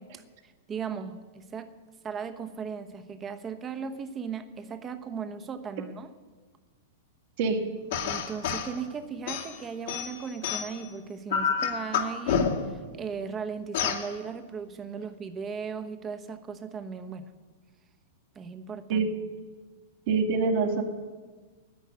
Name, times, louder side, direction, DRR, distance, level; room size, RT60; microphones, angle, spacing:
voice 1, 0.0-1.7 2.0-6.1 8.0-17.3 18.3-19.1, right 6 dB, 20° right, 9 dB, 1.0 m, -37 dB
sound 1, 7.9-8.7 9.3-10.9 11.3-12.8 13.7-14.1, left 6 dB, 65° left, 1.9 m, -28 dB
voice 2, 20.1-20.8, right 4 dB, 50° right, 5 dB, 1.8 m, -25 dB
10.5 x 9.2 x 9.4 m, 1.4 s
hypercardioid pair, 145°, 0 cm